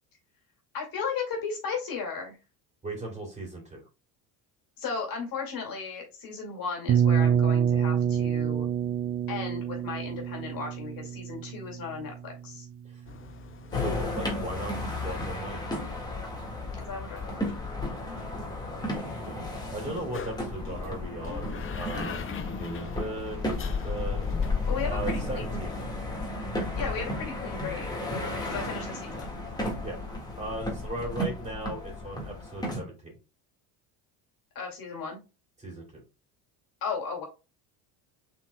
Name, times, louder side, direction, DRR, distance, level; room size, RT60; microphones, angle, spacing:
voice 1, 0.7-2.4 4.8-8.7 9.3-12.7 16.8-18.2 24.7-25.7 26.7-29.2 34.5-35.2 36.8-37.2, left 5 dB, 50° left, 0 dB, 2.3 m, -36 dB
voice 2, 2.8-3.9 12.8-13.0 13.7-15.6 18.5-24.3 24.9-25.8 29.8-30.0 30.3-33.2 35.6-36.0, right 1 dB, 15° right, 0 dB, 2.9 m, -38 dB
sound 1, 6.9-12.7, right 8 dB, 30° right, 0.5 m, -27 dB
sound 2, 13.1-25.6, left 6 dB, 30° left, 0.7 m, -43 dB
sound 3, 13.7-32.8, left 2 dB, 10° left, 1.7 m, -33 dB
5.8 x 3.9 x 2.2 m, 0.30 s
supercardioid pair, 100°, 44 cm